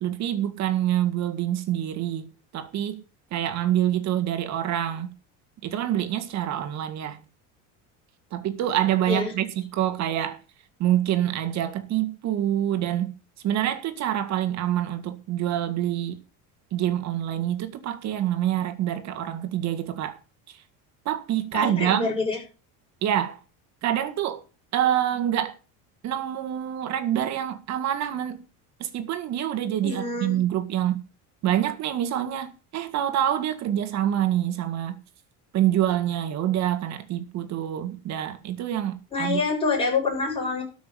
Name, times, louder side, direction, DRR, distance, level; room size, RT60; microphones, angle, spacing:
voice 1, 0.0-3.0 3.3-5.1 5.6-7.2 8.3-10.4 10.8-13.1 13.4-16.2 16.7-20.2 20.5-20.6 21.1-22.2 23.0-23.4 23.8-24.4 24.7-25.6 26.0-28.5 28.8-31.0 31.4-35.0 35.5-39.4, right 11 dB, 45° right, 1.9 m, -26 dB
voice 2, 21.5-22.4 29.8-30.4 39.1-40.6, left 4 dB, 15° left, 7.5 m, -26 dB
13.0 x 6.2 x 7.3 m
cardioid pair, 160°, 38 cm